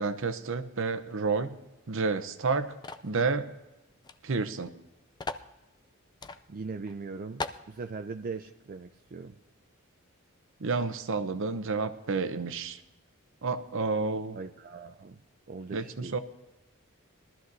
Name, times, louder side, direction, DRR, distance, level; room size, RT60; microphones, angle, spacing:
voice 1, 0.0-1.6 1.9-2.7 3.0-3.5 4.2-4.7 10.6-12.8 13.4-14.4 15.7-16.2, right 4 dB, 60° right, 10 dB, 0.8 m, -30 dB
sound 1, 2.8-3.1 4.0-4.2 4.4-4.5 5.2-5.5 6.2-6.4 6.9-7.0 7.4-7.7, left 3 dB, 20° left, 0.4 m, -37 dB
voice 2, 6.5-9.4 14.3-15.2 15.5-16.2, right 4 dB, 40° right, 7 dB, 0.4 m, -40 dB
21.5 x 13.0 x 2.7 m, 1.0 s
head